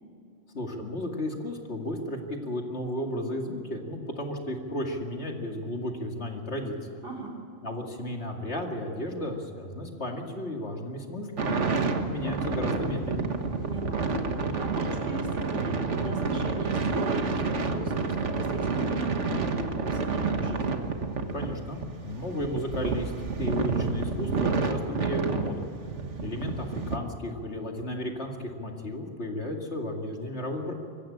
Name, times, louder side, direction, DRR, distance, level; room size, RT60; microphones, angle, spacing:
voice 1, 0.5-6.7 7.6-13.3 21.3-23.1 23.4-25.6 26.2-30.7, left 1 dB, 70° left, 2 dB, 2.6 m, -34 dB
voice 2, 7.0-7.4 13.6-14.3 14.5-20.8, right 2 dB, 55° right, 1 dB, 3.9 m, -38 dB
sound 1, 11.4-27.0, right 4 dB, 85° right, 1.7 m, -29 dB
23.5 x 15.0 x 8.7 m, 2.5 s
omnidirectional pair, 1.2 m